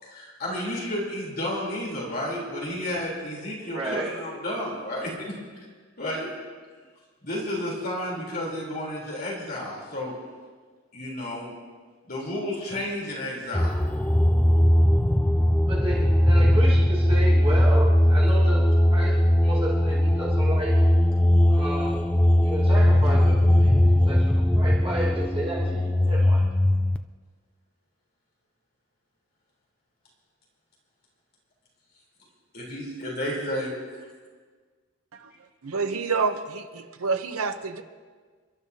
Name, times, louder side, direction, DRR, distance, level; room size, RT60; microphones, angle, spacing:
voice 1, 0.0-5.7 6.0-6.3 7.2-10.1 10.9-11.5 12.1-13.8 32.5-33.7, left 1 dB, 45° left, -4 dB, 3.6 m, -32 dB
voice 2, 3.7-4.1 15.6-18.6 18.9-19.1 19.4-20.7 21.5-22.1 22.4-26.4, right 1 dB, 25° right, -5 dB, 1.7 m, -32 dB
sound 1, 13.5-27.0, left 1 dB, 5° left, 0.3 m, -20 dB
voice 3, 35.6-37.8, right 4 dB, 85° right, 7 dB, 0.9 m, -28 dB
29.0 x 12.5 x 2.8 m, 1.5 s
head